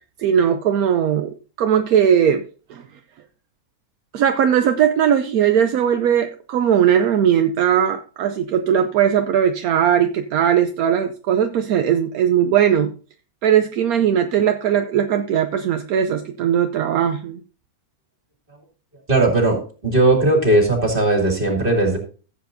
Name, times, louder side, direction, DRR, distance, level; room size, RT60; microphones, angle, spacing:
voice 1, 0.2-2.4 2.7-2.8 4.1-12.9 13.4-17.4, right 9 dB, 75° right, 7 dB, 1.1 m, -19 dB
voice 2, 19.1-22.0, right 2 dB, 35° right, 2 dB, 2.6 m, -17 dB
15.0 x 7.8 x 2.6 m, 0.38 s
omnidirectional pair, 1.6 m